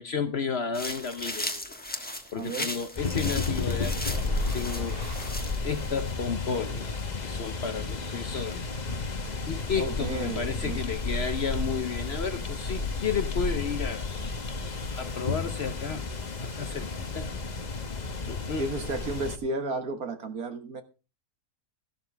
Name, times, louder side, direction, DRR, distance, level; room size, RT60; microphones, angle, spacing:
voice 1, 0.0-1.6 2.3-4.2 4.5-5.0 5.6-6.9 7.2-8.6 9.1-9.2 9.5-14.1 15.0-16.1 16.4-17.3 18.3-18.6, left 6 dB, 50° left, 0.9 m, -32 dB
sound 1, 0.7-6.1, left 1 dB, 5° left, 1.2 m, -37 dB
voice 2, 2.3-2.7 9.8-10.8 18.6-20.8, right 2 dB, 70° right, 1.9 m, -33 dB
sound 2, 3.0-19.4, left 3 dB, 30° left, 1.0 m, -32 dB
sound 3, 4.1-5.4, equal, 35° right, 3.8 m, -44 dB
13.5 x 12.0 x 3.3 m
omnidirectional pair, 1.6 m